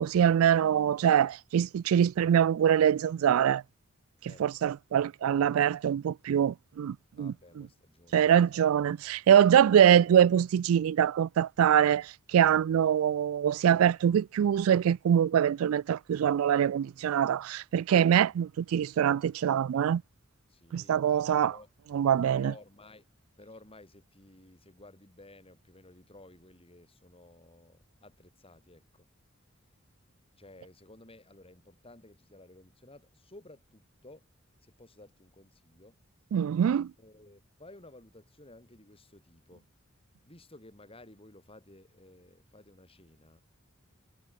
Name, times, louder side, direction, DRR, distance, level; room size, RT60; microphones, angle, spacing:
voice 1, 0.0-3.6 4.4-7.3 8.1-20.0 20.7-21.5 21.9-22.5 36.3-36.9, right 9 dB, 85° right, 0.3 m, -24 dB
voice 2, 4.3-4.7 7.1-8.4 18.0-18.4 20.5-21.0 21.4-21.7 22.3-23.1 23.3-29.1 30.3-34.3 34.6-36.0 37.0-39.7 40.2-43.4, left 2 dB, 30° left, 6.0 m, -55 dB
head